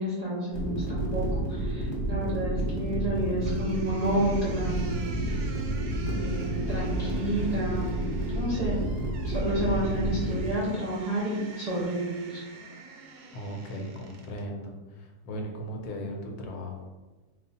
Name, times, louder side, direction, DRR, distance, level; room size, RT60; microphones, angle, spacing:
voice 1, 0.0-5.6 6.0-6.4 6.7-8.0 8.3-8.8 9.2-12.4, right 1 dB, 40° right, -8 dB, 0.6 m, -30 dB
sound 1, 0.5-10.5, right 1 dB, 25° left, 0.6 m, -30 dB
sound 2, 3.4-14.5, right 4 dB, 90° right, 1.2 m, -48 dB
voice 2, 13.3-16.8, equal, 80° left, 2 dB, 1.2 m, -37 dB
3.3 x 2.4 x 4.1 m, 1.2 s
omnidirectional pair, 1.6 m